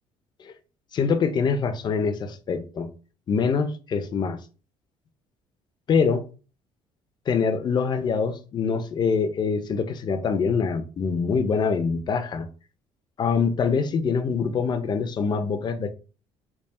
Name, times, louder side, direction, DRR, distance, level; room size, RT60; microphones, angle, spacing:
voice 1, 0.9-2.9 3.3-4.4 5.9-6.2 7.3-12.5 13.2-15.9, left 5 dB, 40° left, 0.6 m, -24 dB
3.5 x 2.3 x 4.2 m
cardioid pair, 105°, 11 cm